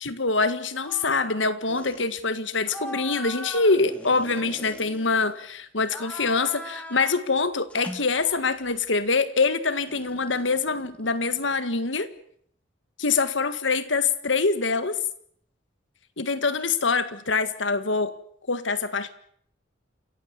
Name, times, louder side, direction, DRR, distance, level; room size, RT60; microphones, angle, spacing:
voice 1, 0.0-12.1 13.0-15.0 16.2-18.1 18.5-19.1, left 4 dB, 80° left, 13 dB, 1.7 m, -25 dB
sound 1, 0.8-1.4 1.7-2.0 2.6-5.4 5.8-7.2 7.7-8.8 9.9-11.7, equal, 5° left, 3.4 m, -40 dB
28.0 x 15.0 x 8.4 m, 0.64 s
head